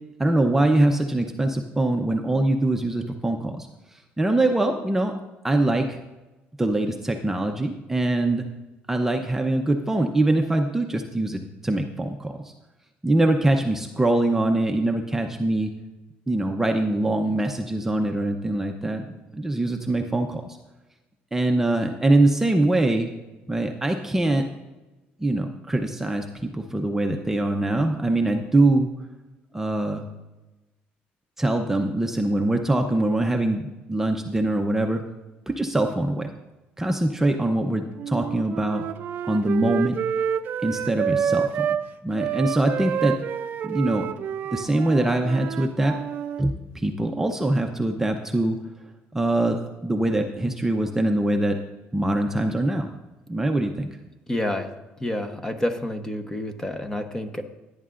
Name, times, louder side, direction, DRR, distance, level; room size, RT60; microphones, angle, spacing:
voice 1, 0.2-3.7 4.2-5.1 5.4-6.0 6.6-8.4 8.9-12.5 13.0-15.7 16.3-20.6 21.3-23.1 23.5-24.5 25.2-28.9 29.5-30.0 31.4-35.0 35.5-36.3 36.8-38.8 39.2-40.0 40.6-41.7 42.0-43.1 43.6-44.1 44.5-46.0 46.4-48.6 49.1-51.6 51.9-52.9 53.3-53.9, right 2 dB, 10° right, 3 dB, 0.7 m, -23 dB
Wind instrument woodwind instrument, 38.0-41.8 42.2-46.4, right 8 dB, 50° right, 0.5 m, -28 dB
voice 2, 54.3-54.7 55.0-57.4, left 1 dB, 15° left, 7 dB, 0.9 m, -28 dB
16.5 x 9.5 x 2.5 m, 1.1 s
cardioid pair, 120°, 4 cm